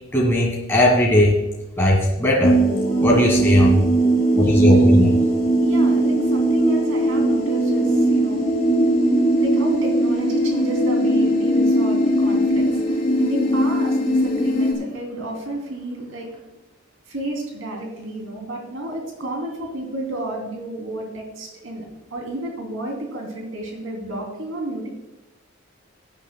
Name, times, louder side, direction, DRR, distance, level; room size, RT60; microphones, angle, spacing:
voice 1, 0.1-1.4 1.8-2.6 3.0-3.8 4.4-5.2, left 1 dB, 10° left, -2 dB, 1.5 m, -17 dB
sound 1, 2.4-14.7, right 1 dB, 30° left, 2.8 m, -19 dB
voice 2, 4.0-4.7 5.2-16.4 17.1-21.8 22.1-24.9, right 1 dB, 75° right, 0 dB, 3.0 m, -31 dB
17.0 x 9.4 x 2.3 m, 1.0 s
head